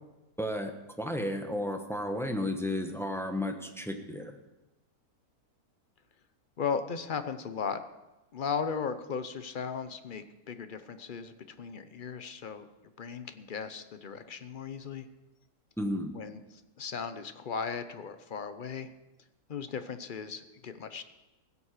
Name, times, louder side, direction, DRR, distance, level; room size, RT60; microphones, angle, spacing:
voice 1, 0.4-4.4 15.8-16.1, left 1 dB, ahead, 5 dB, 1.0 m, -33 dB
voice 2, 6.6-7.8 8.3-12.7 13.0-15.1 16.1-18.9 19.5-21.0, left 6 dB, 45° left, 10 dB, 0.7 m, -36 dB
16.0 x 8.3 x 6.6 m, 1.0 s
omnidirectional pair, 1.6 m